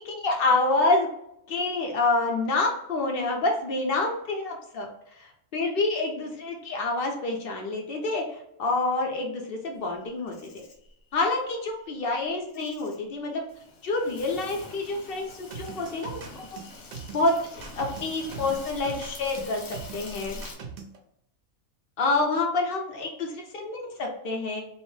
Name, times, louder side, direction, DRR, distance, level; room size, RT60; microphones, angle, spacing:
voice 1, 0.0-1.1 1.5-4.9 5.2-10.6 11.1-13.4 13.8-16.2 17.1-17.5 17.7-20.4 22.0-24.6, left 2 dB, 65° left, 1 dB, 0.5 m, -27 dB
Insect, 9.9-20.6, left 2 dB, 80° left, 1.1 m, -45 dB
sound 1, 15.5-21.0, right 6 dB, 65° right, 0.7 m, -40 dB
2.7 x 2.0 x 3.1 m, 0.77 s
omnidirectional pair, 1.4 m